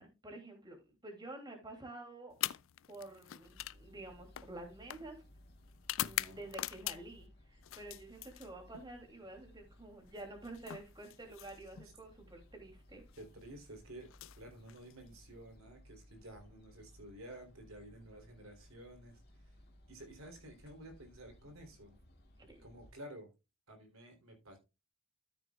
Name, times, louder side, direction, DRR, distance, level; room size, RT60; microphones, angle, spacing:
voice 1, 0.0-2.3 2.9-5.2 6.0-13.0 22.5-22.6, right 2 dB, 20° right, 2.8 m, -49 dB
sound 1, 2.3-7.3 7.6-8.9 10.1-11.9 13.0-13.2 14.0-15.2, left 14 dB, 65° left, 0.4 m, -43 dB
sound 2, 3.4-22.9, left 1 dB, 45° left, 2.1 m, -61 dB
voice 2, 6.0-6.4 13.2-19.6 19.9-22.0 22.6-23.3 23.7-24.6, right 1 dB, 75° right, 3.4 m, -52 dB
13.5 x 6.9 x 2.4 m
head